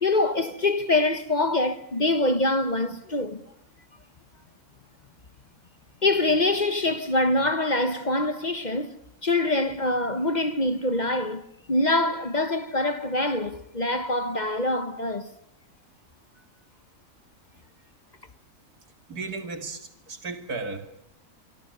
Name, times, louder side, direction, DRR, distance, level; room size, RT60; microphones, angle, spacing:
voice 1, 0.0-3.4 6.0-15.3, left 2 dB, 35° left, 1.1 m, -25 dB
voice 2, 19.1-20.8, right 3 dB, 85° right, 3.0 m, -34 dB
26.0 x 24.0 x 6.7 m
omnidirectional pair, 1.6 m